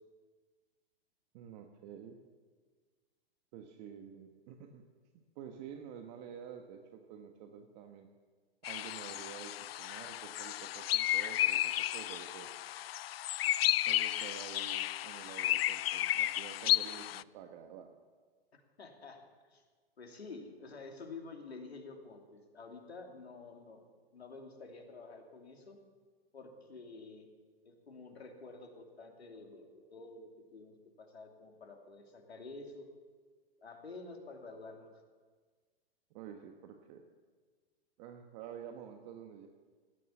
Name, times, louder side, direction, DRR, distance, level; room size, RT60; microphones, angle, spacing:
voice 1, 1.3-2.2 3.5-4.8 5.1-8.1 8.6-12.6 13.8-18.0 36.1-37.0 38.0-39.5, right 8 dB, 45° right, 5 dB, 1.3 m, -49 dB
sound 1, 8.6-17.2, left 13 dB, 70° left, 0.5 m, -33 dB
voice 2, 18.8-19.2 19.5-19.6 20.0-23.8 24.1-25.8 26.3-27.3 27.6-32.9 33.6-34.9, left 3 dB, 90° left, 3 dB, 2.8 m, -49 dB
16.0 x 10.5 x 7.2 m, 1.5 s
hypercardioid pair, 120°, 31 cm